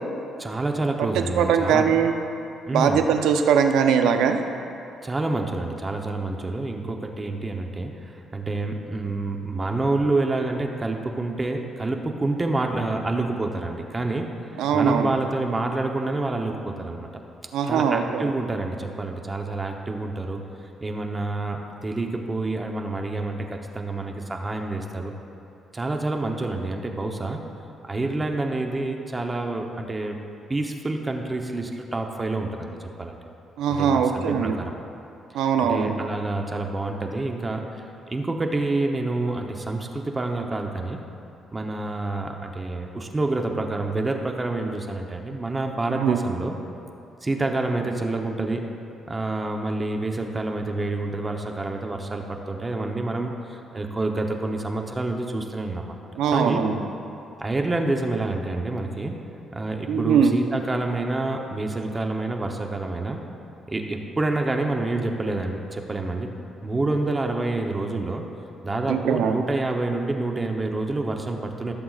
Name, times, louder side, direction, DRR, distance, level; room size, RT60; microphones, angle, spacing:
voice 1, 0.4-1.9 2.7-3.0 5.0-14.3 14.5-17.1 17.7-20.4 20.8-25.1 25.7-27.4 27.8-30.2 30.5-33.2 33.7-34.8 35.3-41.0 41.5-46.5 47.2-48.7 49.1-56.0 56.3-56.6 57.4-59.1 59.5-63.2 63.7-66.3 66.6-68.2 68.6-71.7, right 2 dB, 25° right, 3 dB, 0.8 m, -28 dB
voice 2, 1.4-2.1 2.7-4.4 14.6-15.1 17.5-18.3 33.6-34.6 35.3-35.9 45.9-46.2 56.2-56.8 59.9-60.3 68.9-69.4, right 7 dB, 90° right, 6 dB, 0.6 m, -21 dB
15.5 x 7.6 x 2.4 m, 2.7 s
cardioid pair, 90°, 0 cm